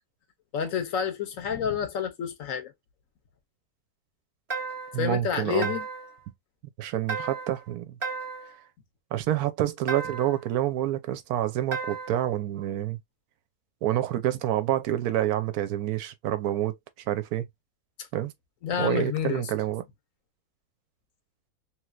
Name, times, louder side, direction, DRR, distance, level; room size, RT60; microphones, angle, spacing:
voice 1, 0.5-2.7 5.0-5.8 18.6-19.4, left 8 dB, 65° left, 1.0 m, -29 dB
sound 1, 4.5-5.0 5.6-6.2 7.1-7.6 8.0-8.6 9.9-10.4 11.7-12.2, right 5 dB, 25° right, 0.8 m, -34 dB
voice 2, 4.9-5.7 6.8-8.0 9.1-13.0 13.8-16.8 17.1-17.5 18.1-18.3 18.8-19.8, right 12 dB, 80° right, 1.1 m, -28 dB
3.2 x 3.1 x 2.3 m
omnidirectional pair, 1.6 m